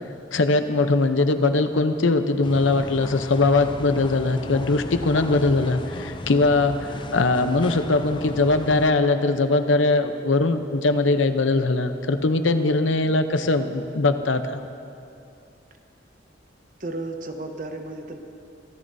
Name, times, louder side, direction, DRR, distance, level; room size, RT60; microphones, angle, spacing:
voice 1, 0.3-14.6, left 3 dB, 85° left, 8 dB, 0.8 m, -21 dB
sound 1, 2.4-8.9, left 2 dB, 25° left, 0.4 m, -35 dB
voice 2, 16.8-18.2, right 2 dB, 45° right, 4 dB, 1.0 m, -33 dB
26.0 x 13.5 x 2.7 m, 2.6 s
head